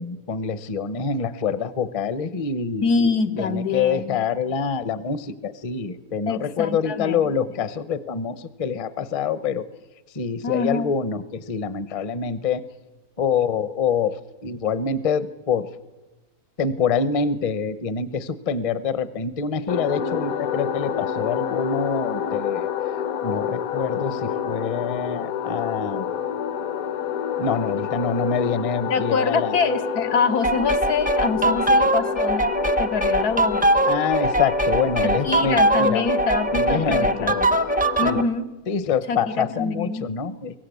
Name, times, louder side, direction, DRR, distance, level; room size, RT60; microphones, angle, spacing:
voice 1, 0.0-9.7 10.1-12.6 13.2-15.7 16.6-22.7 23.2-26.1 27.4-29.5 33.9-36.1 36.5-37.4 38.0-38.2 38.7-40.6, left 5 dB, 35° left, 15 dB, 0.6 m, -26 dB
voice 2, 2.8-4.2 6.3-7.3 10.4-10.9 28.9-32.5 32.8-33.6 35.0-37.6 38.0-38.5 39.1-40.1, left 4 dB, 90° left, 8 dB, 1.7 m, -25 dB
sound 1, 19.7-38.3, left 8 dB, 70° left, 1.3 m, -29 dB
sound 2, 30.4-38.2, right 1 dB, 10° right, 0.4 m, -21 dB
23.0 x 18.0 x 8.3 m, 1.1 s
omnidirectional pair, 1.6 m